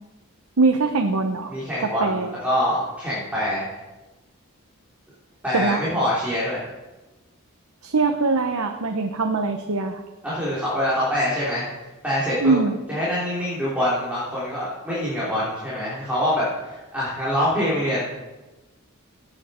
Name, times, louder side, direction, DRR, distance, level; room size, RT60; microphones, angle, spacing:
voice 1, 0.6-1.5 1.8-2.3 5.5-5.8 7.8-10.0 12.4-12.7, right 3 dB, 75° right, 5 dB, 0.9 m, -22 dB
voice 2, 1.5-3.8 5.4-6.6 10.2-11.7 12.0-12.5 12.9-18.1, equal, 5° right, -9 dB, 3.5 m, -25 dB
16.5 x 9.0 x 4.4 m, 1.1 s
head